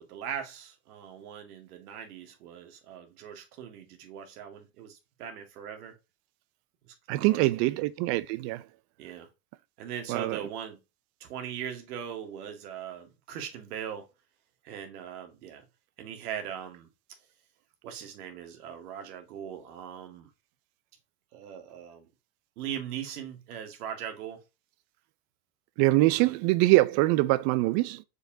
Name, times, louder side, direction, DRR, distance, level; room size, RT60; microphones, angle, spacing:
voice 1, 0.0-6.0 6.9-7.0 7.3-7.8 9.0-9.3 9.8-10.8 11.2-14.1 14.6-15.6 16.0-16.9 17.8-20.3 21.3-22.1 22.6-24.4 26.2-26.4, right 9 dB, 75° right, 2.0 m, -40 dB
voice 2, 7.1-8.6 10.1-10.4 25.8-28.0, right 19 dB, 55° right, 0.8 m, -24 dB
6.5 x 5.1 x 2.8 m
hypercardioid pair, 95°, 45 cm